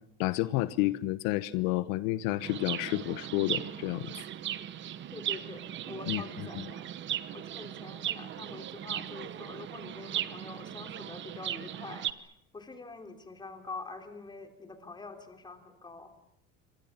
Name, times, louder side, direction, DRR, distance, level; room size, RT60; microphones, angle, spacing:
voice 1, 0.2-4.1 6.1-6.2, left 17 dB, 90° left, 15 dB, 1.1 m, -30 dB
Chirp tweet, 2.4-12.1, right 11 dB, 40° right, 1.1 m, -37 dB
voice 2, 5.1-6.9 7.3-16.1, left 3 dB, 15° left, 6 dB, 3.4 m, -45 dB
27.5 x 24.5 x 7.4 m, 0.76 s
cardioid pair, 150°, 31 cm